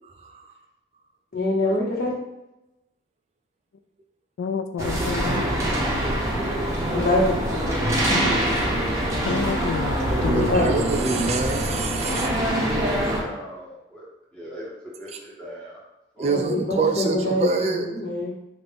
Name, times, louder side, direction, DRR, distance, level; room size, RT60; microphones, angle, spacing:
voice 1, 1.3-2.1 6.9-7.3 10.5-10.7 16.2-18.3, left 2 dB, 50° left, -5 dB, 1.4 m, -24 dB
voice 2, 4.4-5.5 9.2-10.5, left 6 dB, 80° left, 8 dB, 0.3 m, -28 dB
sound 1, 4.8-13.2, right 1 dB, 15° right, 0.8 m, -24 dB
voice 3, 5.0-5.8 10.3-12.3 16.2-17.9 18.2-18.3, right 4 dB, 35° right, 4 dB, 0.3 m, -26 dB
voice 4, 12.7-14.0 14.3-15.8 16.2-16.4, equal, 5° left, -7 dB, 1.2 m, -39 dB
5.9 x 2.5 x 3.4 m, 0.94 s
head